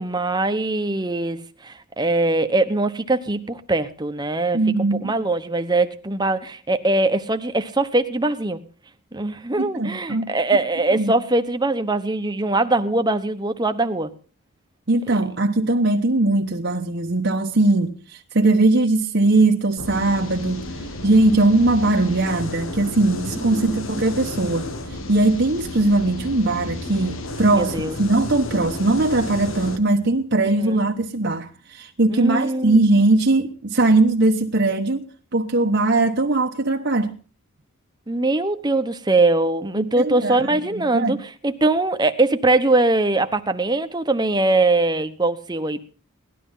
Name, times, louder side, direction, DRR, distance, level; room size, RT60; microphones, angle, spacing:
voice 1, 0.0-4.6 5.0-8.6 9.1-14.1 23.4-23.9 27.5-28.0 32.1-32.8 38.1-45.8, right 2 dB, 20° right, 1.1 m, -22 dB
voice 2, 4.5-5.1 9.6-10.3 10.9-11.1 14.9-20.7 21.0-37.2 39.8-41.2, right 2 dB, 55° right, 1.1 m, -20 dB
sound 1, 19.8-29.8, left 2 dB, 70° left, 1.8 m, -32 dB
18.5 x 12.5 x 5.7 m
head